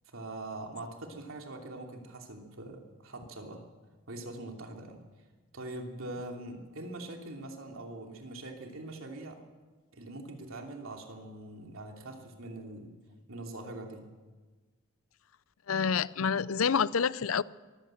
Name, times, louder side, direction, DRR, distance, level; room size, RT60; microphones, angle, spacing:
voice 1, 0.1-3.6 4.1-5.0 5.5-9.4 9.9-12.9 13.3-14.1, right 2 dB, 85° right, 2.9 m, -43 dB
voice 2, 15.7-17.4, left 6 dB, 85° left, 0.6 m, -28 dB
22.5 x 15.5 x 7.8 m
head